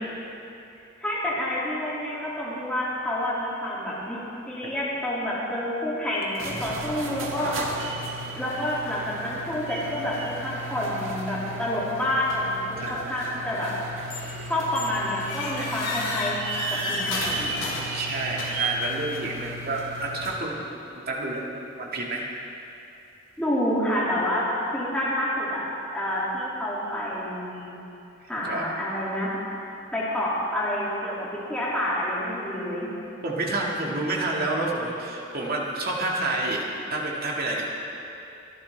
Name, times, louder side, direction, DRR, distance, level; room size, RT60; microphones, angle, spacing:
voice 1, 1.0-4.2 4.5-7.5 8.3-13.7 14.5-16.4 16.9-17.7 23.4-24.4 24.7-27.7 28.3-29.4 29.9-32.9, left 1 dB, 5° left, -9 dB, 2.7 m, -28 dB
sound 1, 6.2-20.5, right 2 dB, 80° right, 1.6 m, -35 dB
voice 2, 12.8-13.4 15.5-15.7 17.9-20.8 21.1-21.5 21.8-22.2 28.4-28.6 33.2-37.7, right 2 dB, 50° right, -2 dB, 2.1 m, -29 dB
sound 2, 14.1-14.4 14.8-18.8, left 3 dB, 65° left, 3.2 m, -33 dB
23.5 x 11.5 x 3.5 m, 2.8 s
head